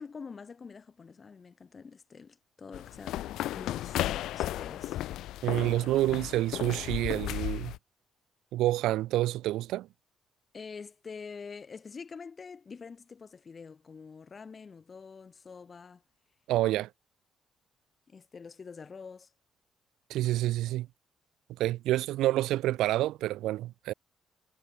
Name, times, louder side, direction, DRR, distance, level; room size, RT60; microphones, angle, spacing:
voice 1, 0.0-5.0 5.9-6.1 10.5-16.0 18.1-19.3, left 5 dB, 40° left, 6.9 m, -46 dB
sound 1, 2.7-7.8, left 14 dB, 85° left, 1.9 m, -35 dB
voice 2, 5.4-7.7 8.5-9.9 16.5-16.9 20.1-20.9 21.6-23.9, right 15 dB, 90° right, 0.9 m, -28 dB
cardioid pair, 90°, 0 cm